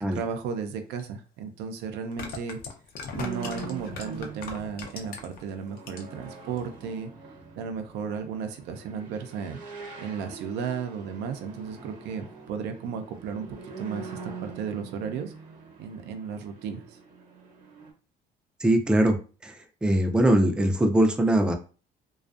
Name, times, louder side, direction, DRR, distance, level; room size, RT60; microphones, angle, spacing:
voice 1, 0.1-2.6 3.1-7.1 7.6-9.6 10.0-15.3 15.8-16.8, right 6 dB, 85° right, 7 dB, 0.4 m, -34 dB
sound 1, 1.0-1.1 2.0-5.4 5.8-6.3 6.6-6.7, left 5 dB, 60° left, 0.5 m, -38 dB
sound 2, 3.2-17.9, right 5 dB, 50° right, 0.8 m, -43 dB
voice 2, 18.6-19.2 19.4-21.6, right 1 dB, 5° right, 4 dB, 0.3 m, -22 dB
2.5 x 2.2 x 2.4 m, 0.36 s
cardioid pair, 110°, 17 cm